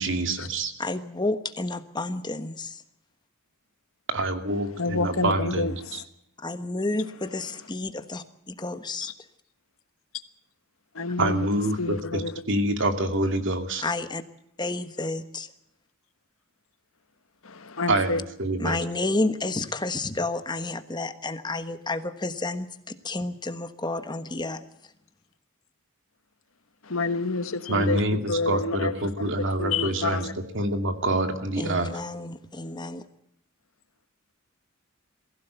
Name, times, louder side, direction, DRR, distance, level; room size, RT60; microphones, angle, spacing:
voice 1, 0.0-0.7 4.1-6.0 11.2-13.8 17.9-18.8 27.7-30.3 30.5-31.9, right 1 dB, 60° right, 7 dB, 2.5 m, -26 dB
voice 2, 0.8-2.8 6.4-9.1 13.8-14.2 14.6-15.5 18.6-24.7 31.5-33.0, left 2 dB, 20° left, 10 dB, 1.3 m, -30 dB
voice 3, 4.8-6.0 10.9-11.5 11.8-12.4 17.4-18.2 26.9-28.0 28.3-30.3, left 3 dB, 75° left, 11 dB, 1.4 m, -29 dB
22.5 x 16.0 x 8.1 m, 0.76 s
head